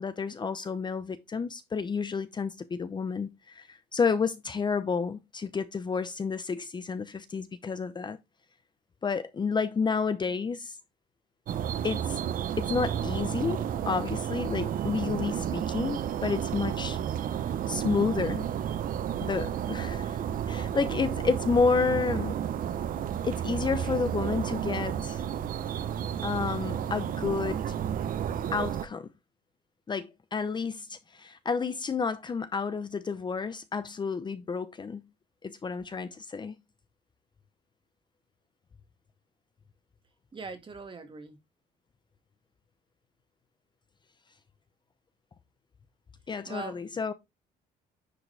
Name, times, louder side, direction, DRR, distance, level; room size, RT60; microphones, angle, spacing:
voice 1, 0.0-8.2 9.0-10.8 11.8-12.2 12.6-17.0 17.7-18.5 19.2-20.2 20.5-22.4 23.2-25.2 26.2-27.7 28.5-29.1 29.9-35.0 35.4-36.6 46.3-47.1, left 5 dB, 25° left, 0.7 m, -30 dB
sound 1, 11.5-28.9, right 9 dB, 55° right, 0.9 m, -32 dB
voice 2, 40.3-41.4 46.5-46.8, right 4 dB, 30° right, 2.0 m, -41 dB
9.9 x 4.8 x 3.4 m
cardioid pair, 110°, 17 cm